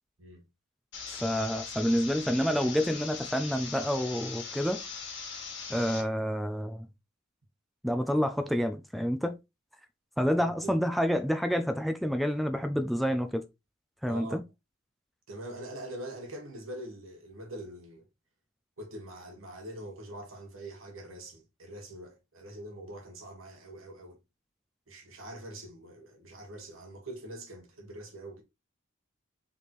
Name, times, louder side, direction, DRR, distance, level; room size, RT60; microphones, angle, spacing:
sound 1, 0.9-6.0, left 5 dB, 60° left, 1.4 m, -40 dB
voice 1, 1.1-4.8 5.7-6.9 7.8-9.4 10.2-13.4 14.0-14.4, equal, ahead, 0.3 m, -28 dB
voice 2, 10.4-10.8 14.1-14.4 15.3-18.0 18.8-24.2 24.9-28.4, right 1 dB, 80° right, 1.5 m, -44 dB
4.1 x 3.4 x 3.0 m
head